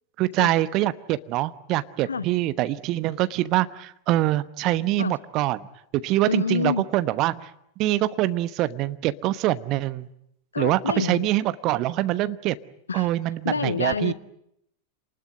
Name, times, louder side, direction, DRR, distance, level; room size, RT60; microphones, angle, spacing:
voice 1, 0.2-5.6 5.9-7.5 7.8-10.1 10.6-12.5 12.9-14.1, right 15 dB, 40° right, 14 dB, 1.1 m, -24 dB
voice 2, 6.3-6.8 10.5-11.3 12.9-13.1 13.4-14.1, left 5 dB, 75° left, 17 dB, 1.0 m, -27 dB
27.5 x 20.0 x 9.5 m, 0.76 s
figure-of-eight pair, 90°, 0 cm